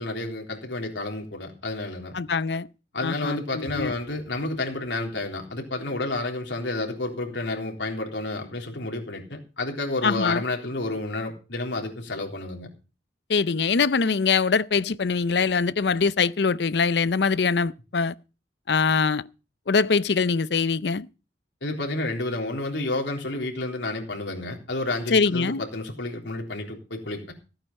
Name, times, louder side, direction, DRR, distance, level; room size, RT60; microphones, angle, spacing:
voice 1, 0.0-2.2 2.9-12.7 21.6-27.3, left 2 dB, 90° left, 3.7 m, -30 dB
voice 2, 2.1-2.7 3.0-3.9 10.0-10.4 13.3-18.1 18.7-19.2 19.7-21.1 25.1-25.6, left 5 dB, 70° left, 0.6 m, -23 dB
15.5 x 9.0 x 5.4 m
head